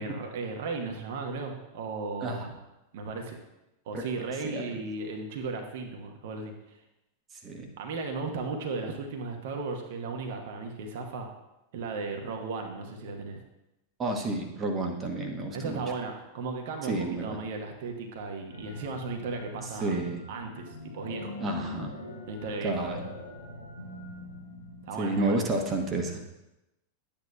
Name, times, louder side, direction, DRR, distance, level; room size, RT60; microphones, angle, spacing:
voice 1, 0.0-2.6 2.9-3.4 3.9-6.8 7.8-11.3 11.7-13.4 15.5-19.9 20.3-21.3 22.3-22.7 24.8-25.4, right 4 dB, 55° right, 3 dB, 1.1 m, -35 dB
voice 2, 14.0-15.8 16.9-17.4 19.8-20.2 21.4-21.9 22.6-23.0 25.0-26.2, right 2 dB, 25° right, 2 dB, 1.2 m, -30 dB
sound 1, 18.5-25.8, left 2 dB, 90° right, 1.3 m, -43 dB
11.5 x 8.6 x 2.3 m, 0.94 s
figure-of-eight pair, 90°, 0 cm